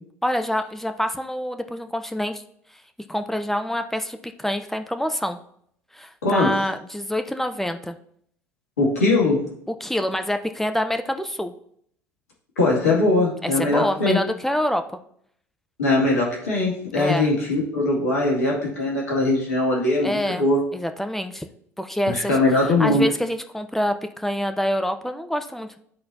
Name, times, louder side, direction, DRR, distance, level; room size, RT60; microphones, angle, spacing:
voice 1, 0.2-2.4 3.1-5.4 5.9-7.9 9.8-11.5 13.4-14.8 17.0-17.3 20.0-20.5 20.7-21.4 21.8-22.4 22.6-25.8, equal, 5° left, 8 dB, 0.7 m, -26 dB
voice 2, 6.2-6.6 8.8-9.5 12.6-14.2 15.8-20.6 22.1-23.0, left 2 dB, 85° left, -3 dB, 2.2 m, -21 dB
12.5 x 4.3 x 2.7 m, 0.66 s
hypercardioid pair, 70°, 8 cm